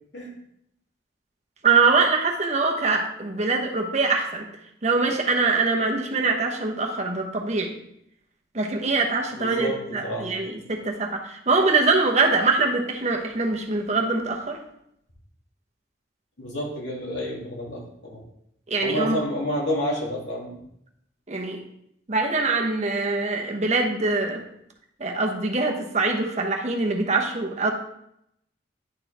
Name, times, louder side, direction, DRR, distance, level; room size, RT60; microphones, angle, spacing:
voice 1, 1.6-4.5 4.8-7.7 8.5-14.6 18.7-19.2 21.3-21.6 22.1-24.4 25.0-27.7, right 3 dB, 40° right, 2 dB, 0.9 m, -23 dB
voice 2, 9.3-10.3 16.4-18.2 18.8-20.6, equal, 85° left, -3 dB, 2.3 m, -29 dB
10.5 x 4.5 x 3.3 m, 0.76 s
head